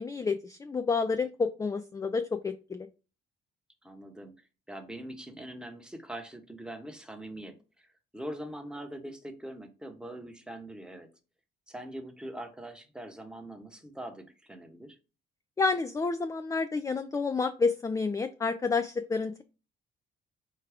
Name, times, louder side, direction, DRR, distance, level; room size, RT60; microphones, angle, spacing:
voice 1, 0.0-2.9 15.6-19.4, left 4 dB, 15° left, 9 dB, 0.3 m, -29 dB
voice 2, 3.8-4.3 4.7-11.1 11.7-15.0, right 1 dB, 5° right, 5 dB, 0.9 m, -43 dB
4.8 x 2.3 x 4.8 m, 0.32 s
cardioid pair, 90°, 20 cm